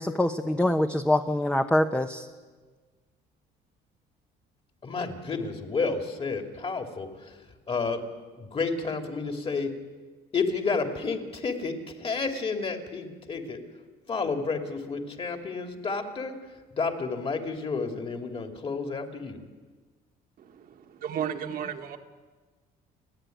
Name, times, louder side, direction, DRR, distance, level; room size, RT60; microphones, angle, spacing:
voice 1, 0.0-2.3, left 1 dB, 5° left, 5 dB, 0.9 m, -24 dB
voice 2, 4.8-9.8 10.3-13.8 14.1-19.4, left 4 dB, 35° left, 5 dB, 2.7 m, -31 dB
voice 3, 20.4-22.0, right 8 dB, 60° right, 5 dB, 1.8 m, -34 dB
29.5 x 10.0 x 9.3 m, 1.4 s
cardioid pair, 110°, 17 cm